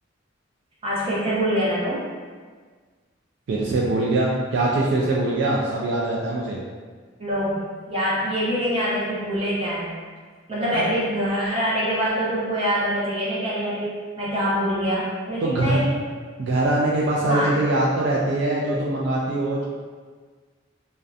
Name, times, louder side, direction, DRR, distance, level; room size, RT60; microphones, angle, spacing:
voice 1, 0.8-2.1 7.2-9.9 10.5-16.0 17.3-17.5, equal, 30° right, -7 dB, 0.6 m, -25 dB
voice 2, 3.5-6.6 10.7-10.9 15.4-15.9 16.4-19.6, right 2 dB, 65° right, -4 dB, 0.3 m, -22 dB
2.6 x 2.1 x 2.3 m, 1.5 s
head